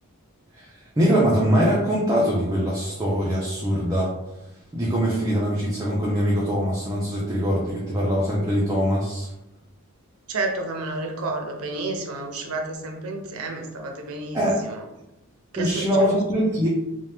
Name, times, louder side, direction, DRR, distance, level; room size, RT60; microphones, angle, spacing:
voice 1, 0.5-4.1 4.7-9.3 14.3-14.6 15.6-16.7, equal, 15° right, -6 dB, 0.5 m, -22 dB
voice 2, 10.3-14.8 15.5-16.1, right 2 dB, 80° right, 3 dB, 0.5 m, -31 dB
2.9 x 2.2 x 3.2 m, 0.93 s
head